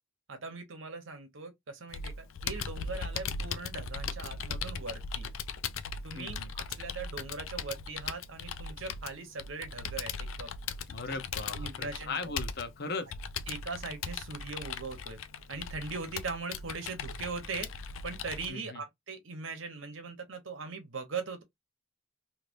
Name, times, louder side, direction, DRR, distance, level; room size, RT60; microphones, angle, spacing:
voice 1, 0.3-2.1 2.4-5.3 6.0-10.1 10.4-10.5 11.1-11.2 11.5-12.2 13.5-15.2 15.5-17.7 18.0-21.4, right 4 dB, 70° right, 1.0 m, -40 dB
Computer keyboard, 1.9-18.5, left 5 dB, 80° left, 0.4 m, -39 dB
voice 2, 6.2-6.5 10.9-13.1 18.5-18.8, left 3 dB, 55° left, 0.8 m, -38 dB
3.2 x 2.8 x 2.6 m
head